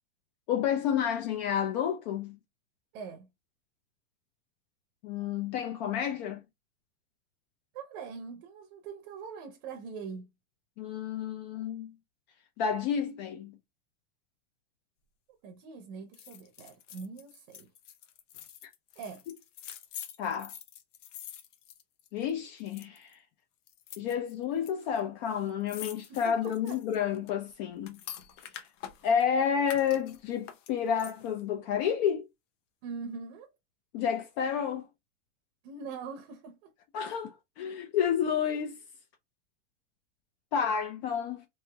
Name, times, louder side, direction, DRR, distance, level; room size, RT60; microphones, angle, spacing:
voice 1, 0.5-2.4 5.0-6.4 10.8-11.9 12.6-13.6 20.2-20.5 22.1-23.2 24.0-28.0 29.0-32.3 33.9-34.9 36.9-38.8 40.5-41.4, left 8 dB, 35° left, 0.5 m, -30 dB
voice 2, 2.9-3.3 7.7-10.3 15.4-17.7 19.0-19.2 26.1-26.8 32.8-33.5 35.6-36.7, right 5 dB, 45° right, 0.7 m, -42 dB
sound 1, 16.1-22.3 22.6-23.1 23.7-24.7 25.0-25.1 25.3-29.2 29.6-31.4 31.8-31.9, left 10 dB, 70° left, 0.8 m, -46 dB
3.1 x 2.9 x 2.2 m
supercardioid pair, 150°, 37 cm